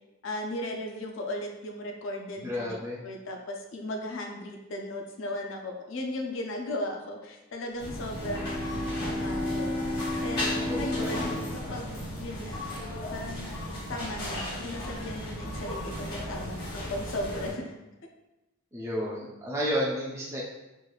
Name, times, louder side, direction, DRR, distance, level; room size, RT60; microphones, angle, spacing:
voice 1, 0.2-2.8 3.0-9.8 10.2-12.7 13.1-13.6 13.9-17.7, left 1 dB, 65° left, 3 dB, 0.4 m, -36 dB
voice 2, 2.4-3.0 10.7-11.1 18.7-20.4, equal, 15° right, -5 dB, 0.3 m, -31 dB
sound 1, 7.8-17.5, left 1 dB, 45° left, 0.9 m, -36 dB
Bowed string instrument, 8.0-12.8, left 1 dB, 85° left, 1.2 m, -34 dB
3.0 x 2.3 x 2.3 m, 0.98 s
head